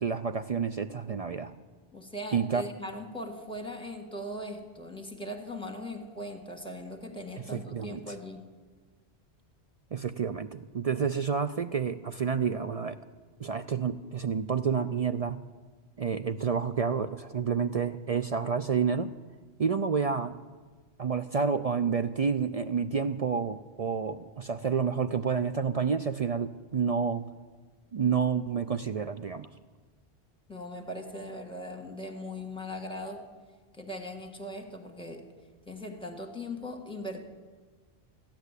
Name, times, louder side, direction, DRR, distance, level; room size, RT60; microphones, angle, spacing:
voice 1, 0.0-1.5 2.3-2.6 7.5-8.1 9.9-13.0 13.4-15.4 16.0-19.1 19.6-20.4 21.0-27.2 27.9-29.5, right 6 dB, 50° right, 11 dB, 0.4 m, -29 dB
voice 2, 1.9-8.4 30.5-33.2 33.7-35.2 35.7-37.2, left 1 dB, 5° left, 4 dB, 1.6 m, -39 dB
15.0 x 10.5 x 8.2 m, 1.4 s
omnidirectional pair, 1.1 m